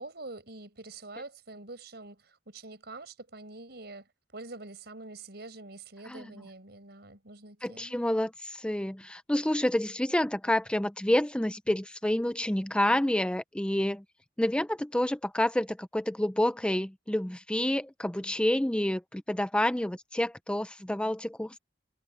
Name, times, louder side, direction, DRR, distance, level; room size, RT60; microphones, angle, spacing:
voice 1, 0.0-8.0, right 2 dB, 65° right, 6.3 m, -45 dB
voice 2, 7.6-14.0 14.4-21.6, left 1 dB, 5° left, 0.6 m, -28 dB
head